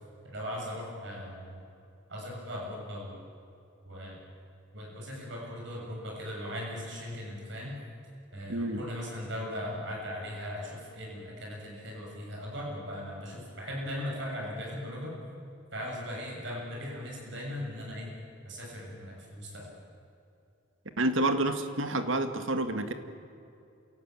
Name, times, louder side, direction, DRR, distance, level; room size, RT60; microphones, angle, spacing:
voice 1, 0.2-1.6 2.1-3.2 3.8-4.2 4.7-7.8 8.3-15.2 15.7-18.1 18.4-19.7, equal, 65° right, -2 dB, 7.1 m, -38 dB
voice 2, 8.5-8.8 21.0-22.9, right 2 dB, 80° right, 8 dB, 1.9 m, -28 dB
28.0 x 18.0 x 9.0 m, 2.6 s
head